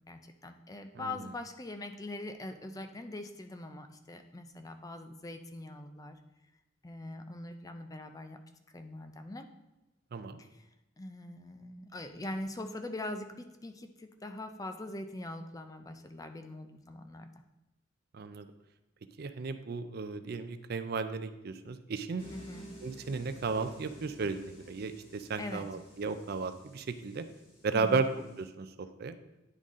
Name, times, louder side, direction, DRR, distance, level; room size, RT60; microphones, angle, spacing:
voice 1, 0.0-6.2 6.8-8.4 8.7-9.5 10.4-10.7 11.0-17.3 22.3-22.7 25.4-25.7 27.7-28.1, left 2 dB, 20° left, 7 dB, 0.4 m, -42 dB
voice 2, 18.1-18.5 19.2-22.3 22.8-27.2 27.6-28.1 28.4-29.2, right 4 dB, 50° right, 10 dB, 0.4 m, -34 dB
sound 1, 22.2-28.4, equal, 50° left, 2.6 m, -53 dB
9.9 x 4.0 x 3.7 m, 1.0 s
head